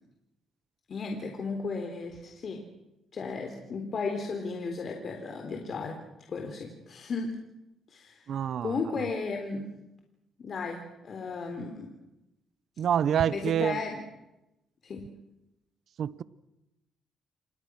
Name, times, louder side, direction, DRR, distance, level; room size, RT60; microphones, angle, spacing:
voice 1, 0.9-2.6 3.1-6.0 6.3-7.4 7.9-9.7 10.4-11.9 13.3-14.0 14.8-15.0, left 4 dB, 50° left, 3.7 m, -35 dB
voice 2, 8.3-8.8 12.8-13.8 16.0-16.2, right 9 dB, 65° right, 0.9 m, -27 dB
28.0 x 23.0 x 6.4 m
cardioid pair, 90°, 0 cm